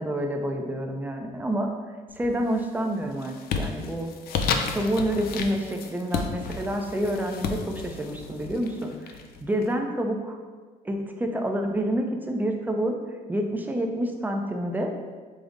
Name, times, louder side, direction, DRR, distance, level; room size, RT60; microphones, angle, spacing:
voice 1, 0.0-1.7 2.2-4.1 4.7-10.4 10.8-13.0 13.3-14.9, right 1 dB, 10° right, 3 dB, 0.4 m, -28 dB
sound 1, 2.1-2.6 3.0-9.6, left 5 dB, 65° left, 0.4 m, -32 dB
5.0 x 2.0 x 3.8 m, 1.4 s
cardioid pair, 110°, 17 cm